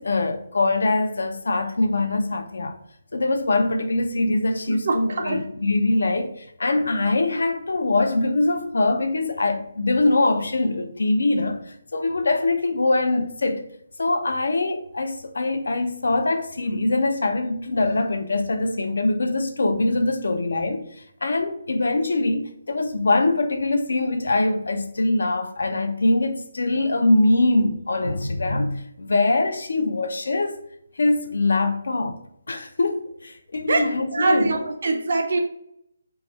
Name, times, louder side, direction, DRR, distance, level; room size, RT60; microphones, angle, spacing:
voice 1, 0.0-2.8 3.1-13.6 14.0-20.9 21.2-30.6 31.0-32.2 32.5-34.6, left 2 dB, 80° left, 0.5 m, -23 dB
voice 2, 4.7-5.4 33.7-35.4, right 3 dB, 65° right, 0.6 m, -23 dB
3.5 x 2.0 x 4.1 m
hypercardioid pair, 165°, 0 cm